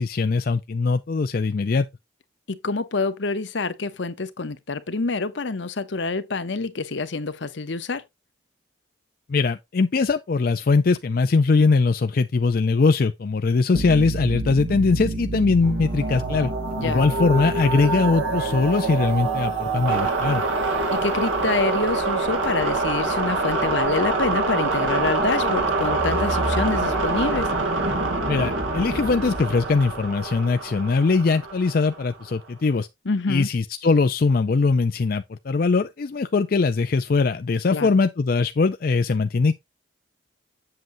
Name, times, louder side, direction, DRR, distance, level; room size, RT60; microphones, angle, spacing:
voice 1, 0.0-1.9 9.3-16.5 16.8-20.4 28.3-32.9 33.3-39.5, left 4 dB, 50° left, 0.4 m, -21 dB
voice 2, 2.5-8.0 16.8-17.0 20.9-27.5 33.0-33.5 37.7-37.9, left 3 dB, 70° left, 0.8 m, -27 dB
sound 1, 13.7-32.2, right 3 dB, 90° right, 2.4 m, -25 dB
7.6 x 7.6 x 2.6 m
head